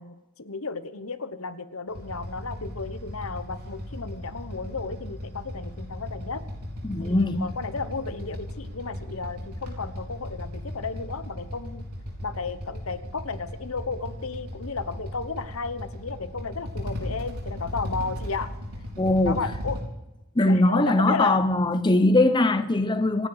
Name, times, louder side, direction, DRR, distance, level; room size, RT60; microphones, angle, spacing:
voice 1, 0.0-6.4 7.0-11.9 12.2-18.5 19.2-19.8 20.5-21.4, left 4 dB, 70° left, 1.1 m, -33 dB
Motorcycle / Idling, 1.9-19.8, left 1 dB, 85° right, 4.3 m, -36 dB
voice 2, 6.8-7.5 19.0-19.4 20.4-23.3, left 2 dB, 20° left, 0.7 m, -21 dB
26.5 x 10.0 x 4.9 m
head